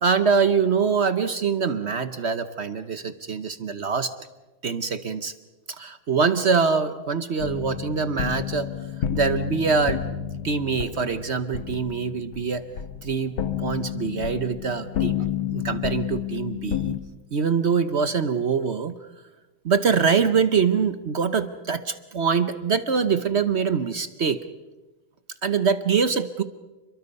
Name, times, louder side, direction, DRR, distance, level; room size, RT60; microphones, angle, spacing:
voice 1, 0.0-4.1 4.6-5.3 5.7-8.7 9.1-10.1 10.4-12.6 13.0-15.2 15.5-17.0 17.3-18.9 19.6-24.4 25.4-26.4, right 5 dB, 50° right, 11 dB, 0.8 m, -24 dB
sound 1, 7.4-17.0, left 10 dB, 85° left, 2.0 m, -30 dB
30.0 x 22.5 x 5.4 m, 1.1 s
omnidirectional pair, 2.2 m